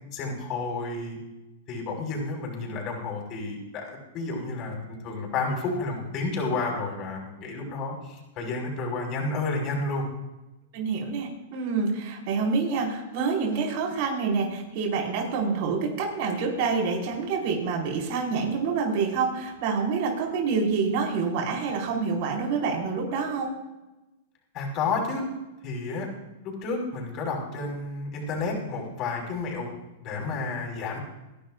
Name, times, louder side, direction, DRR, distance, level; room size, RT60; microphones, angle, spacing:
voice 1, 0.1-1.2 1.7-10.1 24.5-25.3 25.6-26.1 26.4-29.7 30.0-31.0, left 3 dB, 35° left, 0 dB, 5.5 m, -31 dB
voice 2, 10.7-23.6, right 5 dB, 50° right, -1 dB, 5.1 m, -27 dB
29.5 x 11.5 x 2.6 m, 1.0 s
hypercardioid pair, 140°, 0 cm